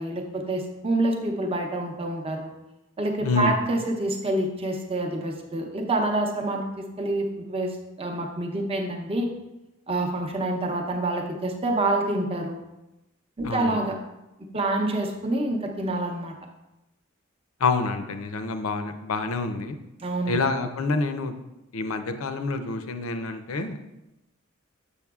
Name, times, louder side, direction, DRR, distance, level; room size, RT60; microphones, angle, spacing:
voice 1, 0.0-2.5 3.0-9.3 9.9-12.6 13.4-14.0 14.5-16.3 20.0-20.4, right 2 dB, 30° right, 2 dB, 0.7 m, -27 dB
voice 2, 3.2-3.6 13.4-13.8 17.6-19.8 20.3-21.3 21.7-23.8, left 3 dB, 85° left, 8 dB, 0.6 m, -27 dB
7.0 x 6.8 x 2.4 m, 0.95 s
head